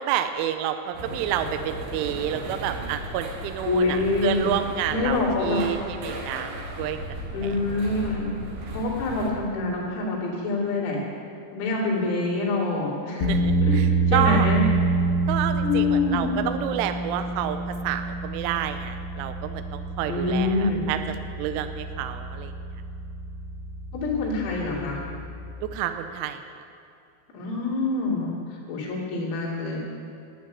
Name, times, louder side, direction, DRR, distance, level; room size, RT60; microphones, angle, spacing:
voice 1, 0.0-6.5 6.8-7.0 7.4-7.5 13.2-13.9 14.1-14.5 15.3-21.0 21.4-22.5 25.6-26.4, right 10 dB, 85° right, 8 dB, 3.0 m, -29 dB
sound 1, 0.9-9.3, right 1 dB, 50° right, 2.7 m, -36 dB
voice 2, 3.7-4.5 4.9-5.7 7.3-8.4 8.7-11.1 11.5-13.3 13.6-13.8 14.1-14.7 15.6-16.4 20.1-20.9 23.9-25.0 27.3-29.8, left 3 dB, 80° left, -5 dB, 5.6 m, -26 dB
sound 2, 13.2-25.7, right 3 dB, 65° left, 3.3 m, -27 dB
12.0 x 10.0 x 9.5 m, 2.5 s
omnidirectional pair, 6.0 m